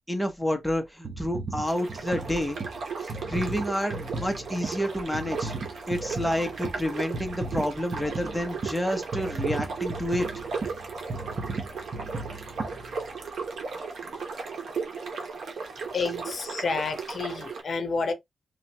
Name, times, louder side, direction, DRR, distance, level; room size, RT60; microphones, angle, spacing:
voice 1, 0.1-2.6 3.0-5.5 5.9-10.3, equal, ahead, 0.6 m, -29 dB
sound 1, 1.0-13.4 14.0-14.1, right 3 dB, 55° right, 0.6 m, -37 dB
sound 2, 1.6-17.6, right 4 dB, 85° right, 0.8 m, -36 dB
voice 2, 15.9-18.1, left 4 dB, 60° left, 0.6 m, -30 dB
2.9 x 2.2 x 2.6 m
wide cardioid pair, 135°, 0 cm